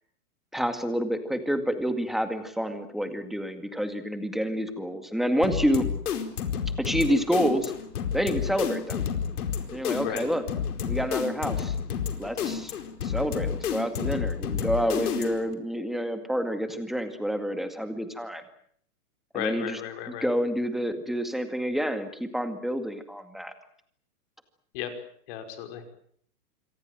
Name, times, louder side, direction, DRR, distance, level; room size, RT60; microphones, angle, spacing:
voice 1, 0.5-5.9 6.8-7.7 8.1-9.0 9.7-10.4 10.8-11.8 12.2-12.7 13.0-18.4 19.3-19.8 20.1-23.5, equal, ahead, 8 dB, 2.0 m, -28 dB
sound 1, 5.4-15.5, left 7 dB, 70° left, 4.7 m, -30 dB
voice 2, 19.3-20.3 24.7-24.9 25.3-25.8, left 10 dB, 35° left, 6 dB, 5.4 m, -34 dB
27.0 x 24.0 x 7.7 m, 0.63 s
hypercardioid pair, 160°, 46 cm